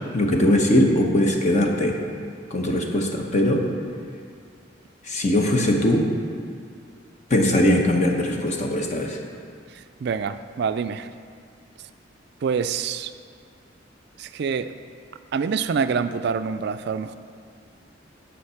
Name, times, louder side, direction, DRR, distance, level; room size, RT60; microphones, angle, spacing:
voice 1, 0.1-1.9 2.5-3.6 5.0-6.1 7.3-9.2, left 1 dB, 40° left, 1 dB, 1.1 m, -20 dB
voice 2, 9.7-11.1 12.4-13.1 14.2-14.7 15.3-17.2, right 6 dB, 60° right, 11 dB, 0.3 m, -26 dB
9.6 x 6.7 x 5.7 m, 2.2 s
head